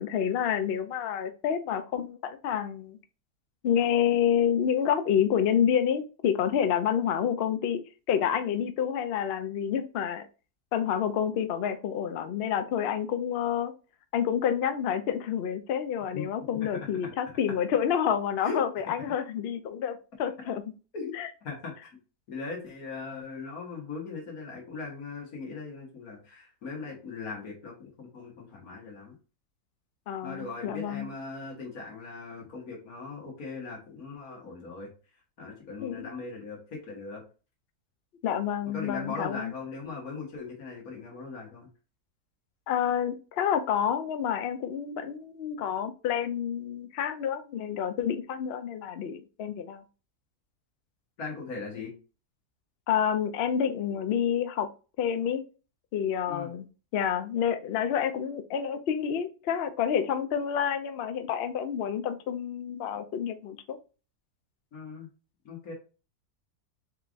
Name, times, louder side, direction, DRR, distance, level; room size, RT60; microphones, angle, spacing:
voice 1, 0.0-3.0 3.6-7.8 8.1-10.3 10.7-13.7 14.1-20.6 21.2-21.3 30.1-31.1 35.8-36.1 38.2-39.5 42.7-49.8 52.9-54.7 55.0-55.4 55.9-56.7 56.9-63.8, left 8 dB, 80° left, 0.5 m, -28 dB
voice 2, 16.5-16.9 18.4-18.6 20.9-21.2 21.4-21.9 22.3-29.2 30.2-34.9 35.4-37.2 38.7-41.7 51.2-51.9 56.3-56.5 64.7-65.1 65.4-65.7, left 4 dB, 60° left, 2.0 m, -39 dB
4.8 x 3.4 x 2.5 m
omnidirectional pair, 1.7 m